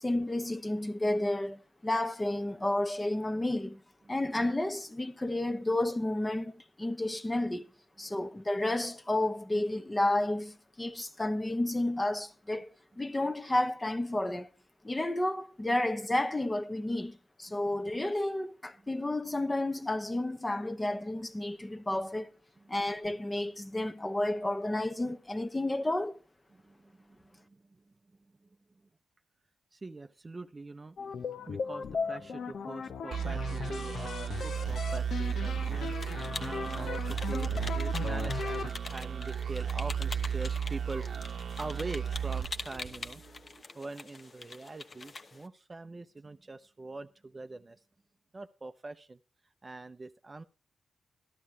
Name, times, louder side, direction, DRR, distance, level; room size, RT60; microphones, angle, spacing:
voice 1, 0.0-3.8 4.1-7.6 8.0-12.7 13.0-14.5 14.8-22.3 22.7-26.2, left 1 dB, 20° left, 1.1 m, -31 dB
voice 2, 26.5-27.9 28.4-28.5 29.7-31.0 31.4-43.2 43.7-47.8 48.3-49.2 49.6-50.4, right 3 dB, 30° right, 0.7 m, -44 dB
sound 1, 31.0-38.7, left 6 dB, 70° left, 0.8 m, -37 dB
sound 2, 33.1-43.4, right 8 dB, 65° right, 1.0 m, -34 dB
sound 3, 34.4-45.5, left 3 dB, 40° left, 1.1 m, -45 dB
13.5 x 12.0 x 3.2 m
cardioid pair, 80°, 0 cm